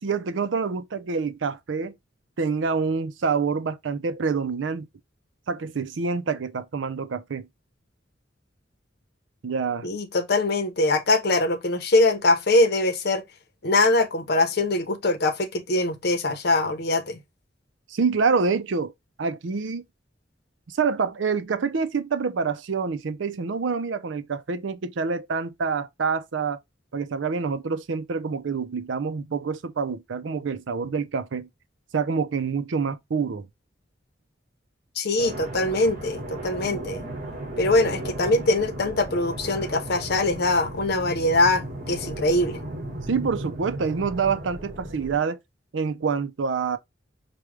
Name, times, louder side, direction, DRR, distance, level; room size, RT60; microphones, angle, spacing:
voice 1, 0.0-1.9 2.4-4.9 5.5-7.5 9.4-9.9 17.9-18.9 19.2-19.8 20.7-26.6 26.9-31.5 31.9-33.5 43.1-45.4 45.7-46.8, right 5 dB, 85° right, 0.5 m, -26 dB
voice 2, 9.8-13.2 13.6-17.2 35.0-37.0 37.6-42.6, left 2 dB, 60° left, 0.8 m, -22 dB
sound 1, 35.2-45.2, right 1 dB, 45° right, 1.5 m, -35 dB
4.8 x 2.3 x 3.2 m
head